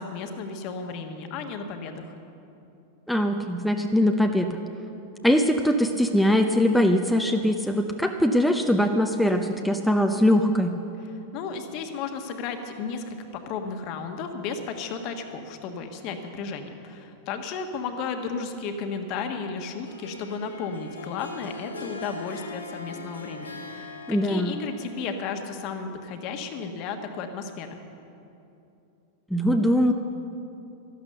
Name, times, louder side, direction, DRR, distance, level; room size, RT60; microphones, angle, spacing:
voice 1, 0.0-2.1 11.0-27.8, left 5 dB, 45° left, 6 dB, 1.4 m, -34 dB
voice 2, 3.1-4.6 5.2-10.7 24.1-24.6 29.3-29.9, equal, ahead, 4 dB, 0.7 m, -22 dB
Harp, 19.9-25.6, left 3 dB, 85° left, 1.4 m, -41 dB
13.0 x 12.0 x 6.8 m, 2.8 s
figure-of-eight pair, 90°, 0 cm